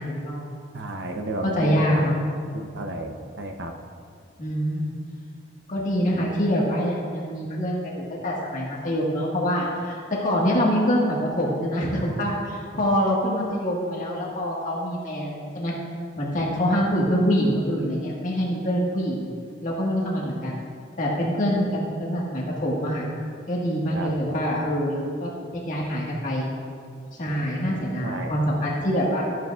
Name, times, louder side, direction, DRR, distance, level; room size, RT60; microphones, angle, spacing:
voice 1, 0.0-0.6 1.4-2.2 4.4-5.0 5.7-15.7 16.2-19.3 19.6-20.6 21.0-23.0 23.5-26.5 27.2-29.2, equal, 45° left, -4 dB, 1.7 m, -25 dB
voice 2, 0.7-2.0 2.5-3.7 24.0-24.1 28.0-28.3, right 1 dB, 65° right, 4 dB, 0.8 m, -32 dB
14.0 x 9.2 x 2.5 m, 2.2 s
head